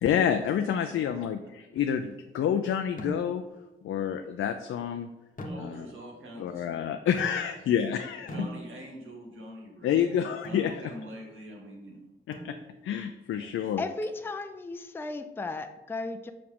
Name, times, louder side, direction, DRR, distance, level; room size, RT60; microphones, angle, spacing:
voice 1, 0.0-3.4 3.8-5.1 5.6-5.9 6.4-8.5 9.8-10.9 12.3-12.6 12.8-13.8, left 9 dB, 75° left, 7 dB, 0.4 m, -28 dB
voice 2, 0.9-1.2 5.4-6.7 8.3-10.1 10.5-12.0 13.3-13.5, equal, 70° right, -1 dB, 1.9 m, -45 dB
sound 1, 3.0-3.6 5.4-6.1 7.2-7.8 8.3-9.1 10.4-10.8 12.3-12.9, equal, 40° left, 0.9 m, -41 dB
voice 3, 13.8-16.3, left 3 dB, 10° left, 8 dB, 0.4 m, -35 dB
6.0 x 4.8 x 3.6 m, 1.0 s
cardioid pair, 90°, 21 cm